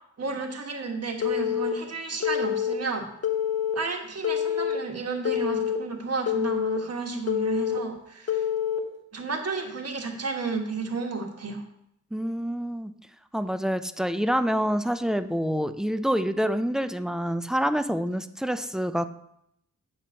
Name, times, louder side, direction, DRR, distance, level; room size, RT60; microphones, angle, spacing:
voice 1, 0.2-3.1 3.7-8.4 9.1-11.6, right 4 dB, 55° right, 3 dB, 1.4 m, -32 dB
Telephone, 1.2-1.7 2.2-2.7 3.2-3.7 4.2-4.8 5.2-5.8 6.3-6.8 7.3-7.8 8.3-8.8, left 10 dB, 55° left, 1.0 m, -26 dB
voice 2, 12.1-12.9 13.3-19.1, equal, ahead, 11 dB, 0.3 m, -27 dB
8.3 x 4.3 x 6.2 m, 0.76 s
wide cardioid pair, 140°, 30 cm